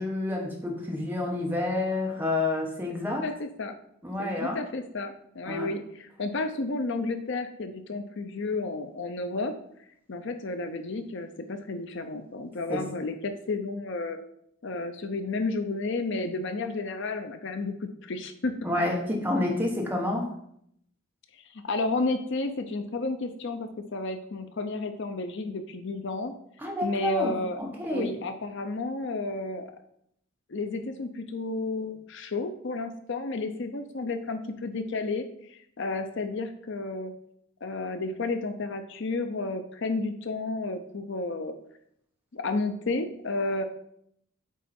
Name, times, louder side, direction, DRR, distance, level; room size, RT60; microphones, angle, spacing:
voice 1, 0.0-3.3 4.0-4.6 5.5-5.7 12.7-12.8 18.6-20.3 26.6-28.1, left 2 dB, 10° right, -1 dB, 1.2 m, -29 dB
voice 2, 3.2-3.7 4.2-9.5 10.1-14.2 14.6-18.5 21.5-26.3 26.8-27.6 27.9-29.7 30.5-37.1 37.6-41.5 42.3-43.6, left 3 dB, 55° left, 8 dB, 0.6 m, -32 dB
8.3 x 4.1 x 4.3 m, 0.71 s
head